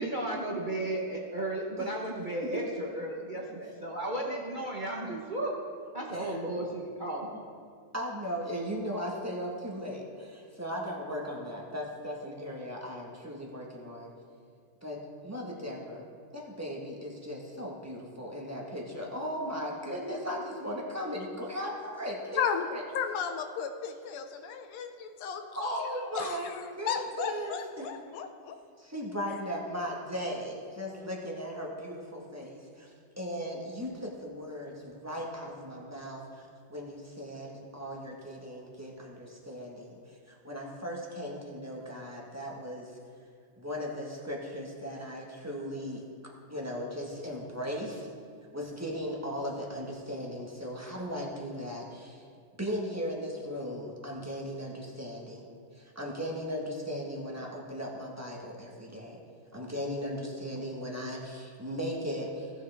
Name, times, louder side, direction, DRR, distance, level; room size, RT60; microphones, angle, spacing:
voice 1, 0.0-5.5 5.9-7.3, right 1 dB, 50° right, -3 dB, 0.5 m, -34 dB
voice 2, 7.9-14.1 14.8-16.0 16.3-22.8 25.5-27.9 28.8-42.9 43.6-48.1 48.5-52.2 52.6-55.4 55.7-59.2 59.5-62.5, equal, 10° right, -2 dB, 0.8 m, -37 dB
voice 3, 22.9-28.6, left 7 dB, 85° left, 6 dB, 1.7 m, -34 dB
17.0 x 6.3 x 3.4 m, 2.2 s
omnidirectional pair, 2.4 m